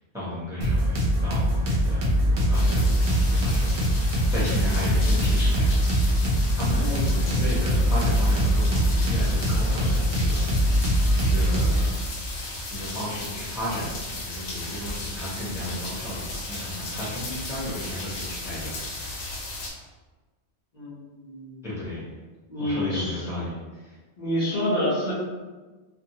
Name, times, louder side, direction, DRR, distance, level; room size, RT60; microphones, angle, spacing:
voice 1, 0.1-6.2 6.6-12.1 12.7-19.4 21.6-22.1 22.6-23.9, left 1 dB, 5° right, -9 dB, 0.7 m, -34 dB
sound 1, 0.6-11.9, equal, 45° right, 0.5 m, -22 dB
sound 2, 2.5-19.7, left 2 dB, 75° left, 0.9 m, -35 dB
voice 2, 6.8-7.1 20.7-21.6 22.5-23.2 24.2-25.1, left 1 dB, 45° left, -10 dB, 0.8 m, -28 dB
2.6 x 2.2 x 2.7 m, 1.3 s
omnidirectional pair, 1.1 m